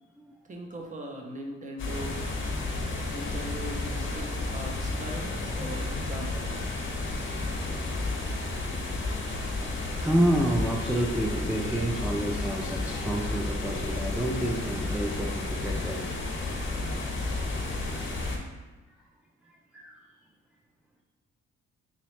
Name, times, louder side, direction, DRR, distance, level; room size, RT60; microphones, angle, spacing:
voice 1, 0.5-2.2 3.1-6.6, equal, 25° right, 1 dB, 0.7 m, -39 dB
sound 1, 1.8-18.4, left 2 dB, 40° left, 0.8 m, -32 dB
voice 2, 8.0-9.7 10.0-16.6 19.4-20.0, right 1 dB, 5° right, -1 dB, 0.3 m, -30 dB
3.9 x 3.0 x 3.1 m, 1.2 s
cardioid pair, 90°, 30 cm